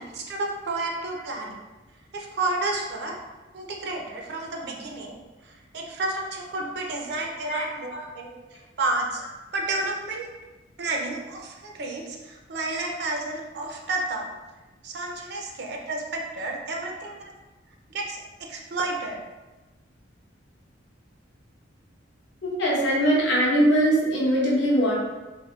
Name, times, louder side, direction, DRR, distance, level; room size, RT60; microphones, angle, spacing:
voice 1, 0.0-1.6 2.1-3.2 3.5-5.2 5.4-8.3 8.8-9.2 9.5-10.3 10.8-14.3 14.8-17.2 17.9-18.2 18.5-19.2, right 2 dB, 55° right, 1 dB, 0.4 m, -31 dB
voice 2, 22.4-24.9, equal, 60° left, -4 dB, 0.8 m, -21 dB
3.5 x 2.1 x 2.2 m, 1.1 s
head